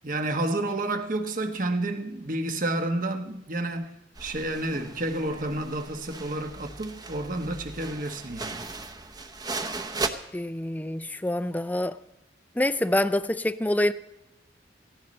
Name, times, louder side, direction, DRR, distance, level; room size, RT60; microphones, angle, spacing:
voice 1, 0.0-3.9 4.2-8.6, right 2 dB, 50° right, 1.3 m, -30 dB
sound 1, 4.2-10.1, right 3 dB, 20° right, 0.8 m, -37 dB
voice 2, 10.3-12.0 12.6-13.9, left 1 dB, 10° left, 0.4 m, -26 dB
17.5 x 15.5 x 4.3 m
head